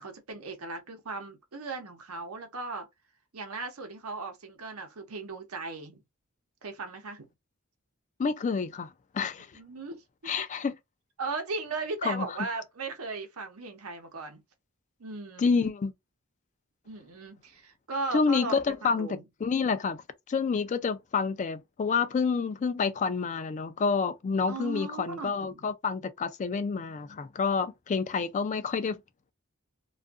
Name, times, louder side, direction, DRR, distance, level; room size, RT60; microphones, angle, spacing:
voice 1, 0.0-2.9 3.3-6.0 6.6-7.3 9.5-10.3 11.2-14.4 15.0-15.5 16.8-18.6 18.8-19.2 24.5-25.7, right 3 dB, 90° right, 0.8 m, -37 dB
voice 2, 8.2-8.9 9.1-9.5 10.3-10.7 12.0-12.3 15.4-15.9 18.1-20.0 20.3-29.0, left 5 dB, 35° left, 0.3 m, -28 dB
2.6 x 2.4 x 2.3 m
head